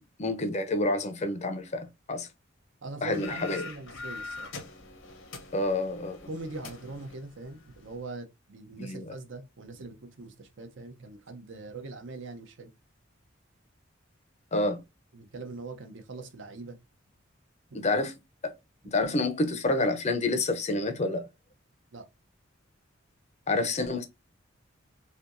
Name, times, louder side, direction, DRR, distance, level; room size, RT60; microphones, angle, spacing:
voice 1, 0.2-2.3 3.0-3.7 5.5-6.2 8.8-9.2 14.5-14.8 17.7-18.1 18.4-18.5 18.9-21.3 23.5-24.1, left 2 dB, 35° left, 0.5 m, -28 dB
voice 2, 2.8-4.5 6.3-12.7 15.1-16.8 21.9-22.1, right 3 dB, 65° right, 0.7 m, -42 dB
sound 1, 3.1-8.0, left 3 dB, 75° left, 0.8 m, -44 dB
3.4 x 2.7 x 2.5 m
head